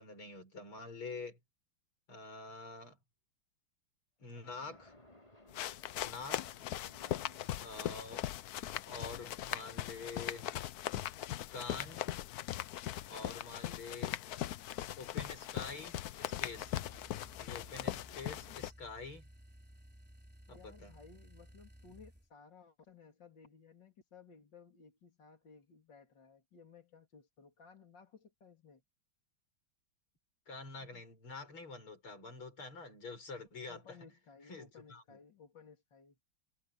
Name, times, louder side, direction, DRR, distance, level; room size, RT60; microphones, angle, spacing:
voice 1, 0.0-1.4 2.1-3.0 4.2-5.0 6.0-6.4 7.6-8.3 8.9-10.5 11.5-12.1 13.1-14.2 15.0-16.8 17.4-19.3 20.5-20.9 30.5-34.0 34.4-35.2, left 3 dB, 70° left, 7.3 m, -47 dB
Splash splatter, 4.2-8.3, left 1 dB, 15° left, 4.9 m, -62 dB
sound 1, 5.5-18.7, left 13 dB, 85° left, 0.8 m, -40 dB
voice 2, 6.2-6.5 7.0-7.4 13.1-13.4 18.5-18.6 20.5-28.8 30.8-31.0 33.7-36.2, left 5 dB, 55° left, 3.8 m, -58 dB
sound 2, 16.2-22.3, equal, 5° right, 3.7 m, -57 dB
omnidirectional pair, 2.4 m